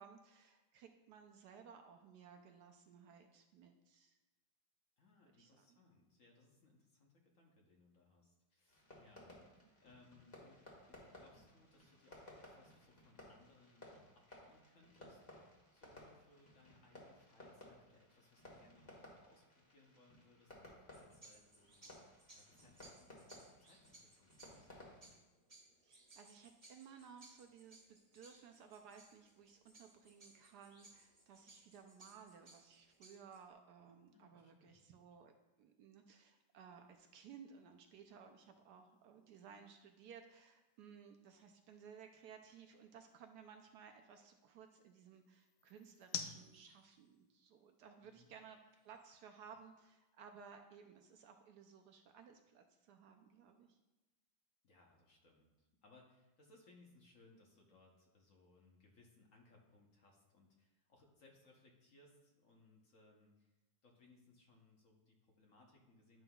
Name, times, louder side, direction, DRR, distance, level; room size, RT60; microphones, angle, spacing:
voice 1, 0.0-4.2 5.4-5.8 25.8-53.8, right 7 dB, 70° right, 5 dB, 1.0 m, -59 dB
voice 2, 5.0-24.8 34.1-34.8 48.0-48.3 54.6-63.5 63.8-66.2, left 2 dB, 55° left, 0 dB, 1.1 m, -68 dB
Fireworks, 8.7-25.2, left 1 dB, 25° left, 1.4 m, -59 dB
sound 1, 20.9-33.5, right 2 dB, 20° right, 1.5 m, -64 dB
sound 2, 36.3-50.6, left 8 dB, 75° left, 1.2 m, -56 dB
11.0 x 5.5 x 2.3 m, 1.1 s
omnidirectional pair, 2.0 m